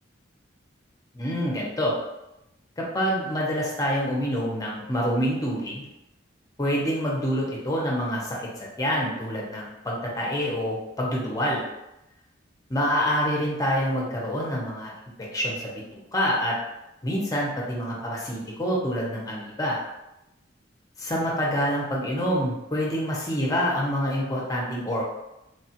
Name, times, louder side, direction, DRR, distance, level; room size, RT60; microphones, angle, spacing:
voice 1, 1.1-1.9 2.8-5.9 6.6-11.6 12.7-14.9 15.3-16.6 17.0-19.8 21.0-25.0, equal, 20° left, -3 dB, 0.6 m, -27 dB
3.2 x 2.3 x 2.8 m, 0.92 s
head